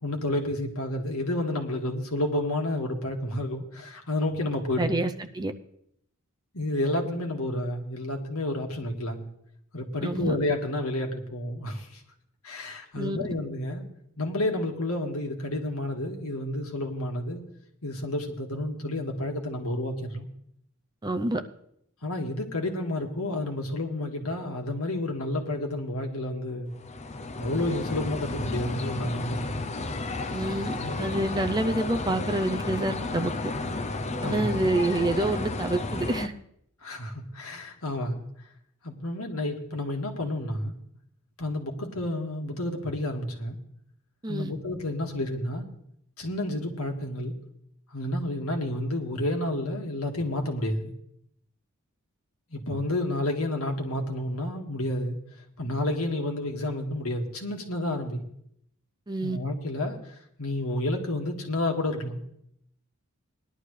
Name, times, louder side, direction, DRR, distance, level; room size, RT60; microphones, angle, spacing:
voice 1, 0.0-5.0 6.5-9.3 9.7-12.0 12.4-13.9 14.2-17.4 17.8-20.3 22.0-26.7 27.4-29.5 30.8-31.2 34.2-34.6 36.8-38.2 38.8-40.7 41.4-43.6 44.3-45.7 46.2-47.4 47.9-50.9 52.5-55.2 55.6-58.2 59.2-62.2, left 1 dB, 85° left, 1.9 m, -30 dB
voice 2, 4.8-5.1 5.3-5.5 10.0-10.4 13.0-13.2 21.0-21.4 30.3-33.3 34.2-36.3 44.2-44.5 59.1-59.4, right 2 dB, 20° right, 0.5 m, -27 dB
sound 1, 26.7-36.3, left 2 dB, 30° left, 0.6 m, -32 dB
19.0 x 11.5 x 3.3 m
head